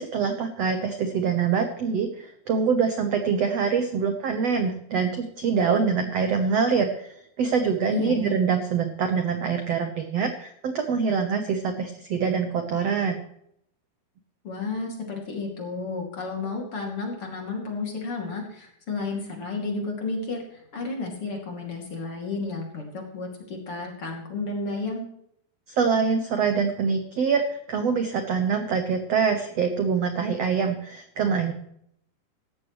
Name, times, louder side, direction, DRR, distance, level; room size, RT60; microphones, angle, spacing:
voice 1, 0.0-7.1 7.4-13.2 25.7-31.5, right 6 dB, 85° right, 6 dB, 1.4 m, -25 dB
voice 2, 7.8-8.3 14.4-25.0, left 3 dB, 40° left, 0 dB, 3.2 m, -32 dB
16.5 x 13.0 x 3.2 m, 0.72 s
omnidirectional pair, 4.7 m